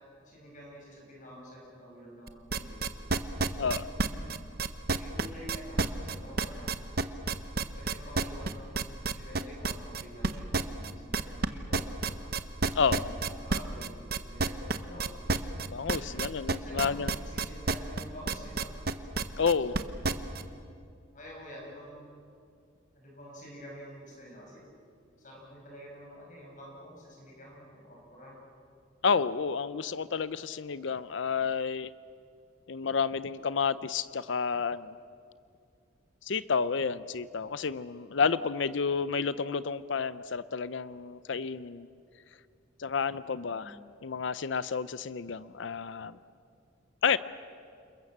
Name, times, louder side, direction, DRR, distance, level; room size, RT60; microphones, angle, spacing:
voice 1, 0.2-2.9 3.7-4.3 4.9-6.7 7.7-12.2 12.8-15.0 15.9-16.2 16.5-18.7 19.7-20.2 21.1-22.2 22.9-24.6 25.2-28.4 43.5-43.7, equal, 40° left, -2 dB, 5.9 m, -48 dB
sound 1, 2.3-20.4, right 3 dB, 50° right, 0.9 m, -29 dB
voice 2, 12.7-13.1 15.7-17.1 19.4-19.8 29.0-31.9 32.7-34.9 36.2-41.9 42.8-43.8 44.0-46.2 47.0-47.2, left 5 dB, 65° left, 16 dB, 0.5 m, -30 dB
28.5 x 21.5 x 7.3 m, 2.3 s
head